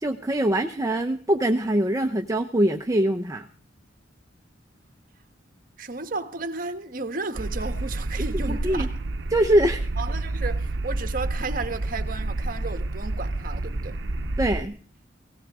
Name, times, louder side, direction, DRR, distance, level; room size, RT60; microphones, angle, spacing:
voice 1, 0.0-3.5 8.5-8.9 9.3-9.9 14.4-14.8, right 1 dB, 20° right, 0.7 m, -23 dB
voice 2, 5.8-8.9 10.0-14.0, right 3 dB, 50° right, 1.3 m, -33 dB
sound 1, 7.3-14.6, right 2 dB, 70° right, 0.8 m, -29 dB
18.5 x 18.0 x 3.7 m
head